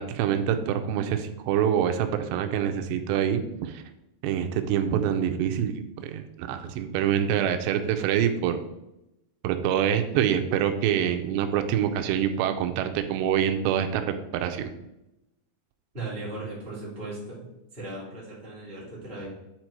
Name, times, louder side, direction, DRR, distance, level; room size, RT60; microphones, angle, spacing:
voice 1, 0.0-3.8 4.2-5.7 6.0-8.6 9.4-14.7, right 9 dB, 90° right, 7 dB, 2.8 m, -26 dB
voice 2, 15.9-17.4 17.7-19.3, right 2 dB, 15° right, -7 dB, 3.2 m, -37 dB
10.5 x 4.4 x 4.6 m, 0.90 s
omnidirectional pair, 4.9 m